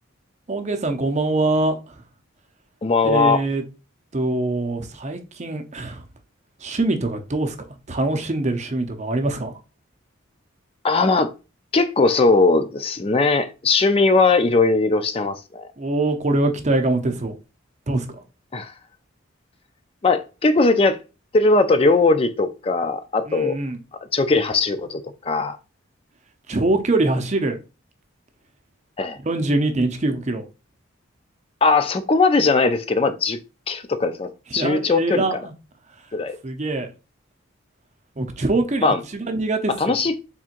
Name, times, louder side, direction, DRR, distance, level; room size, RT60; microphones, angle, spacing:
voice 1, 0.5-2.0 3.0-3.6 4.1-6.0 6.6-7.5 7.9-9.6 15.8-17.4 17.9-18.2 23.3-23.8 26.5-27.6 29.2-30.5 34.5-35.5 36.4-36.9 38.2-40.0, right 2 dB, 35° right, 0.6 m, -23 dB
voice 2, 2.8-3.4 10.8-11.3 11.7-15.7 18.5-18.7 20.0-21.0 21.3-23.6 24.1-25.6 29.0-29.2 31.6-33.4 33.7-35.2 36.1-36.4 38.8-39.0 39.8-40.2, left 3 dB, 25° left, 0.4 m, -19 dB
4.3 x 3.6 x 2.5 m
head